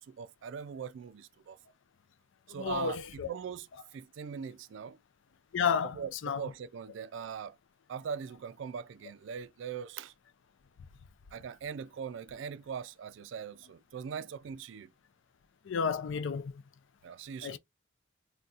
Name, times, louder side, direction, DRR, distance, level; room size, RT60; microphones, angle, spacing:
voice 1, 0.0-1.6 2.5-5.0 5.8-7.6 7.9-10.1 11.3-14.9 17.0-17.6, right 7 dB, 65° right, 0.3 m, -41 dB
voice 2, 2.6-3.3 5.5-6.0 6.2-6.4 15.7-16.5 17.4-17.6, left 6 dB, 65° left, 0.4 m, -31 dB
4.0 x 2.2 x 2.4 m
head